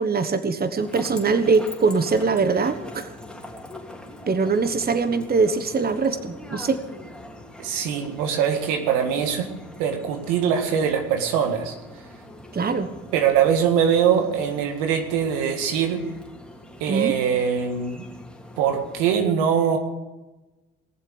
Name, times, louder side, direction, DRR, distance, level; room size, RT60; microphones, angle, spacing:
voice 1, 0.0-3.1 4.3-6.8 12.5-12.9 16.9-17.2, right 4 dB, 30° right, 10 dB, 1.3 m, -22 dB
sound 1, 0.8-19.2, left 1 dB, 5° left, 3.0 m, -43 dB
voice 2, 7.6-9.5 9.8-11.8 13.1-16.0 16.8-18.0 18.6-19.8, right 8 dB, 80° right, 5 dB, 1.9 m, -22 dB
19.5 x 7.3 x 8.1 m, 1.1 s
hypercardioid pair, 60°, 30 cm